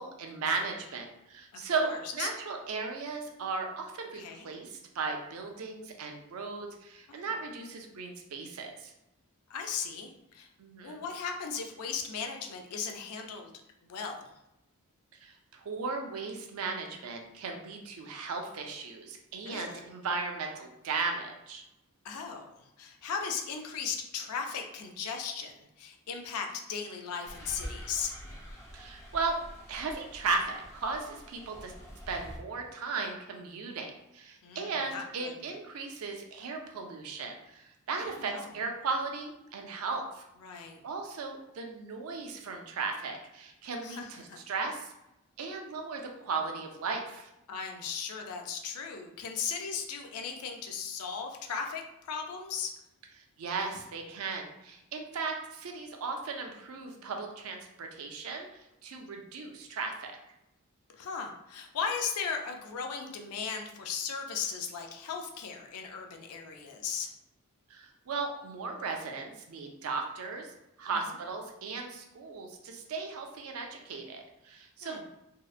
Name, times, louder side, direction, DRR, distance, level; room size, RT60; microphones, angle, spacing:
voice 1, 0.0-8.9 10.6-11.0 15.2-21.6 28.7-29.4 29.7-31.7 32.1-40.2 40.5-44.9 45.4-47.3 53.4-58.5 58.8-60.2 67.7-70.5 70.8-75.1, right 4 dB, 70° right, 3 dB, 0.4 m, -36 dB
voice 2, 1.5-2.3 4.1-4.5 7.1-7.3 9.5-10.5 10.8-13.5 13.8-14.3 19.5-19.8 22.0-28.2 34.4-35.3 38.0-38.5 40.4-40.8 43.8-44.4 47.5-52.7 60.9-67.1 70.9-71.2 74.8-75.0, left 6 dB, 85° left, 3 dB, 0.4 m, -37 dB
sound 1, 27.2-32.4, equal, 15° left, 0.4 m, -46 dB
2.7 x 2.1 x 2.3 m, 0.88 s
head